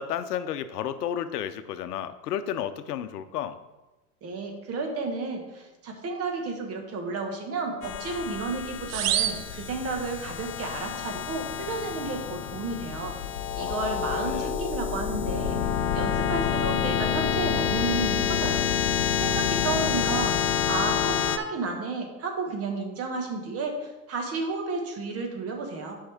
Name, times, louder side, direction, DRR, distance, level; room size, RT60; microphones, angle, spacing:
voice 1, 0.0-3.6 13.6-13.8 14.1-14.5, left 10 dB, 70° left, 11 dB, 0.8 m, -32 dB
voice 2, 4.2-13.1 13.5-15.6 15.9-18.6 19.2-20.4 20.7-26.0, right 3 dB, 30° right, 3 dB, 1.6 m, -32 dB
sound 1, 7.8-21.4, left 8 dB, 40° left, 0.6 m, -28 dB
sound 2, 8.9-10.4, right 11 dB, 60° right, 0.7 m, -30 dB
10.0 x 5.5 x 3.5 m, 1.1 s
hypercardioid pair, 110°, 48 cm